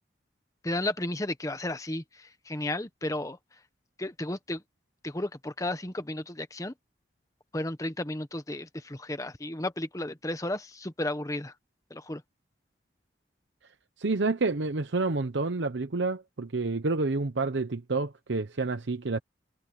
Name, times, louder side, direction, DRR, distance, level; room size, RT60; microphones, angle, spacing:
voice 1, 0.6-3.4 4.0-4.6 5.0-6.7 7.5-11.5 11.9-12.2, left 1 dB, 20° left, 1.1 m, -33 dB
voice 2, 14.0-19.2, right 3 dB, 80° right, 0.9 m, -29 dB
head